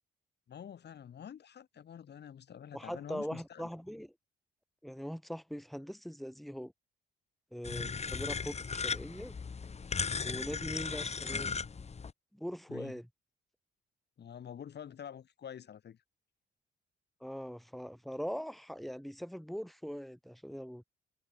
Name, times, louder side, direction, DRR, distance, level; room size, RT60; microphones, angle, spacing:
voice 1, 0.5-3.7 7.6-8.0 12.7-12.9 14.2-16.0, left 8 dB, 55° left, 4.3 m, -47 dB
voice 2, 2.7-4.1 4.8-6.7 7.5-9.4 10.2-11.5 12.3-13.1 17.2-20.8, equal, ahead, 4.9 m, -41 dB
sound 1, 7.6-12.1, left 5 dB, 35° left, 1.8 m, -37 dB
cardioid pair, 90°, 20 cm